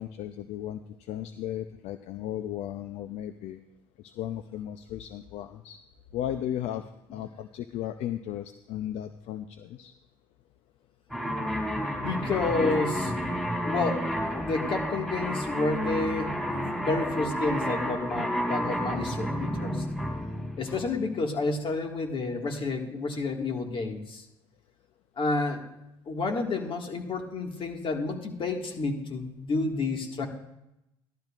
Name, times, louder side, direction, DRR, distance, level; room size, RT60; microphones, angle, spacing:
voice 1, 0.0-3.6 4.0-5.8 6.1-6.9 7.1-9.9, left 11 dB, 75° left, 10 dB, 0.5 m, -35 dB
sound 1, 11.1-21.2, equal, 5° left, 3.4 m, -31 dB
voice 2, 12.0-13.1 13.7-16.4 16.8-19.9 20.6-24.2 25.2-25.7 26.1-30.3, left 3 dB, 50° left, 3 dB, 1.8 m, -30 dB
15.0 x 12.0 x 2.4 m, 0.87 s
supercardioid pair, 65°, 11 cm